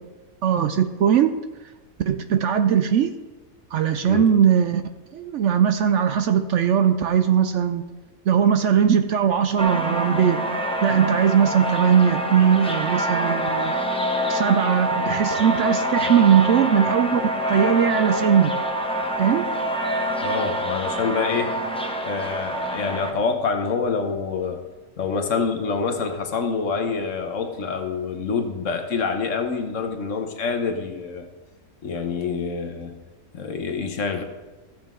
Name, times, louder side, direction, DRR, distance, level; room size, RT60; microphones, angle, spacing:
voice 1, 0.4-1.3 2.1-3.1 3.7-4.8 5.1-7.8 8.3-13.9 14.3-17.2 17.5-18.6 19.2-19.5, right 8 dB, 65° right, 9 dB, 0.8 m, -19 dB
sound 1, 9.6-23.1, equal, 5° left, 0.4 m, -26 dB
voice 2, 20.2-21.5 22.0-24.6 25.0-31.3 31.8-32.9 33.3-34.2, left 5 dB, 60° left, 6 dB, 1.3 m, -26 dB
14.5 x 7.5 x 3.7 m, 1.2 s
omnidirectional pair, 1.5 m